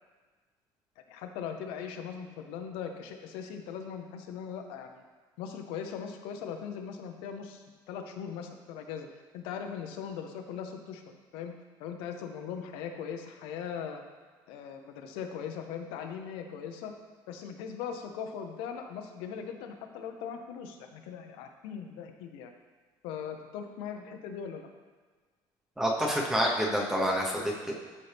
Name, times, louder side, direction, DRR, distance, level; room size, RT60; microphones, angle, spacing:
voice 1, 1.1-5.0 5.4-9.1 9.3-11.0 11.3-11.5 11.8-14.0 14.5-16.9 17.3-22.5 23.0-24.7, left 7 dB, 90° left, 5 dB, 0.8 m, -39 dB
voice 2, 25.8-27.7, equal, 5° right, -1 dB, 1.0 m, -28 dB
12.0 x 4.3 x 3.4 m, 1.4 s
cardioid pair, 160°, 9 cm